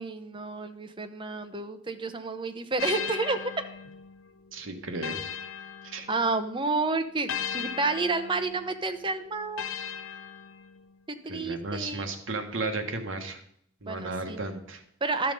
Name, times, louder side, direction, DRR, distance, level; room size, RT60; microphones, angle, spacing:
voice 1, 0.0-3.5 6.1-9.6 11.1-12.1 13.8-14.4 15.0-15.3, right 3 dB, 25° right, 8 dB, 0.7 m, -30 dB
sound 1, 2.8-6.5 7.3-11.0, left 8 dB, 70° left, 0.6 m, -38 dB
voice 2, 4.5-5.2 5.8-6.1 11.3-13.4 13.8-14.8, right 3 dB, 65° right, 6 dB, 1.3 m, -34 dB
12.5 x 5.7 x 5.4 m, 0.70 s
head